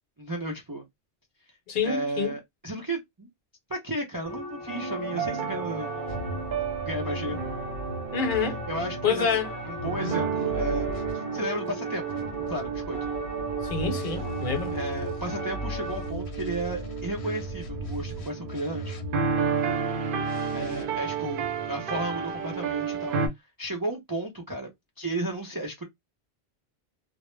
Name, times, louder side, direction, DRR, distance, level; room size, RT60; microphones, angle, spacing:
voice 1, 0.2-0.8 1.8-3.3 3.7-5.9 6.4-6.5 6.9-7.4 8.7-9.4 9.7-13.0 14.7-19.0 20.5-23.2 23.6-24.7 25.0-25.8, right 1 dB, 35° right, 0.3 m, -33 dB
voice 2, 1.7-2.3 8.1-8.6 9.0-9.5 13.6-14.7, left 6 dB, 55° left, 0.8 m, -27 dB
sound 1, 4.2-16.1, left 2 dB, 5° left, 0.7 m, -39 dB
sound 2, 4.7-23.3, right 6 dB, 60° right, 0.7 m, -32 dB
sound 3, 6.1-11.1 12.1-19.4 20.2-20.8, equal, 85° left, 0.9 m, -38 dB
2.1 x 2.0 x 3.0 m
omnidirectional pair, 1.1 m